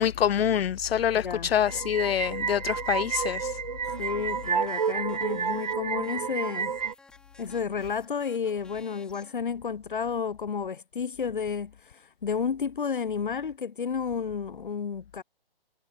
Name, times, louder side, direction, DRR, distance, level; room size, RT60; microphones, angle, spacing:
voice 1, 0.0-3.5, left 9 dB, 75° left, 0.5 m, -26 dB
voice 2, 1.1-1.5 4.0-6.7 7.4-15.2, left 6 dB, 55° left, 1.8 m, -31 dB
sound 1, 1.7-6.9, right 6 dB, 45° right, 1.2 m, -30 dB
sound 2, 3.8-5.7 6.0-9.3, left 3 dB, 5° left, 6.7 m, -54 dB
hypercardioid pair, 175°, 30 cm